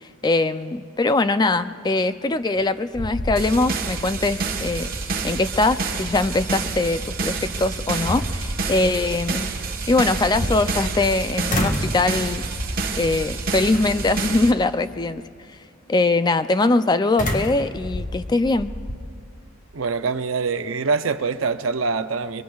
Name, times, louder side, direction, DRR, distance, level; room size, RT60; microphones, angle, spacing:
voice 1, 0.0-4.9 5.2-9.5 9.9-12.4 12.9-15.2 15.9-18.7, left 2 dB, 20° left, 12 dB, 0.3 m, -22 dB
sound 1, 2.3-2.7 2.9-4.0 4.3-4.4 7.1-7.2 7.8-8.7 10.0-11.1 11.5-12.0 12.6-12.9 13.7-14.2 17.2-19.0, left 1 dB, 40° left, 1.4 m, -29 dB
sound 2, 3.4-14.5, right 4 dB, 45° right, 1.3 m, -28 dB
voice 2, 19.7-22.4, right 4 dB, 70° right, 10 dB, 0.6 m, -24 dB
26.5 x 23.5 x 2.4 m, 2.2 s
head